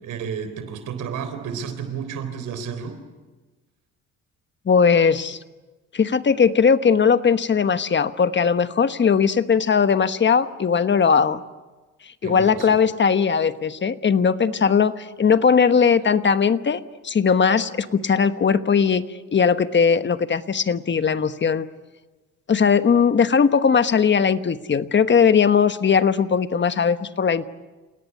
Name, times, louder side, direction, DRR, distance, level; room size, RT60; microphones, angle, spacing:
voice 1, 0.0-3.0 12.2-12.8, right 7 dB, 80° right, 9 dB, 3.7 m, -31 dB
voice 2, 4.7-5.4 5.9-11.4 12.2-19.0 19.3-21.7 22.5-27.5, left 6 dB, 40° left, 12 dB, 1.2 m, -19 dB
28.5 x 18.0 x 9.4 m, 1.2 s
cardioid pair, 90°, 30 cm